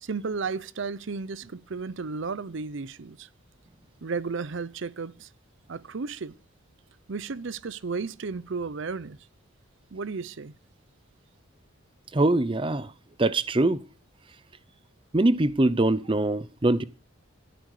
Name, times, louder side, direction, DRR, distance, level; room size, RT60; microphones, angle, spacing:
voice 1, 0.0-3.3 4.0-5.3 5.7-6.3 7.1-9.2 9.9-10.5, right 4 dB, 60° right, 0.6 m, -33 dB
voice 2, 12.1-12.9 13.2-13.8 15.1-16.8, right 2 dB, 25° right, 0.7 m, -23 dB
16.5 x 10.5 x 4.8 m
head